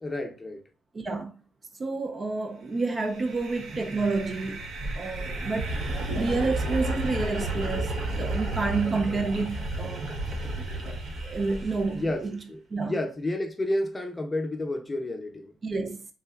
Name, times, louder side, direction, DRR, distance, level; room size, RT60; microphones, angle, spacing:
voice 1, 0.0-0.6 11.9-15.5, left 1 dB, 20° left, 0.6 m, -31 dB
voice 2, 0.9-1.3 1.8-4.6 5.0-5.8 6.1-10.1 10.4-10.5 10.8-12.4 12.7-13.0 15.6-16.1, right 3 dB, 35° right, 0.3 m, -29 dB
sound 1, 3.0-12.2, right 2 dB, 70° right, 0.8 m, -32 dB
3.2 x 2.6 x 2.3 m
cardioid pair, 90°, 0 cm